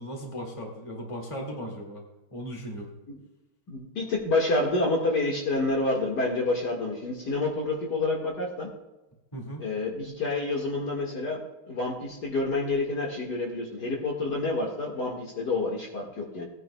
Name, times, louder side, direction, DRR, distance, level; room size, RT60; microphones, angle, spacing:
voice 1, 0.0-2.0 2.3-2.9 9.3-9.7, equal, 15° left, 0 dB, 2.0 m, -37 dB
voice 2, 3.7-8.7 9.6-11.4 11.7-16.5, left 2 dB, 50° left, -2 dB, 2.2 m, -28 dB
18.5 x 9.9 x 2.3 m, 1.0 s
omnidirectional pair, 2.3 m